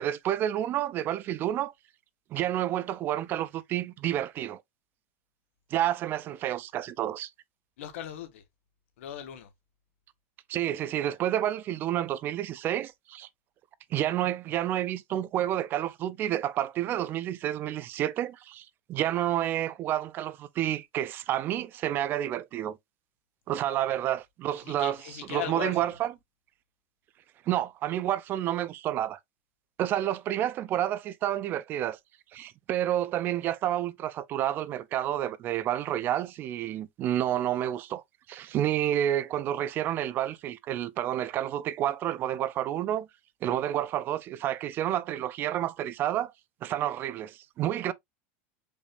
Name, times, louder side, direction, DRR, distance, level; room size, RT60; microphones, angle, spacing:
voice 1, 0.0-1.7 2.3-4.6 5.7-7.3 10.5-13.3 13.9-22.8 23.5-25.0 25.3-26.1 27.5-29.2 29.8-32.0 32.3-38.0 38.3-43.1 43.4-46.3 46.6-47.9, right 12 dB, 30° right, 0.3 m, -29 dB
voice 2, 7.8-8.4 9.0-9.5 23.7-23.9 24.6-26.0, left 10 dB, 85° left, 1.4 m, -39 dB
5.2 x 3.3 x 2.4 m
supercardioid pair, 155°, 7 cm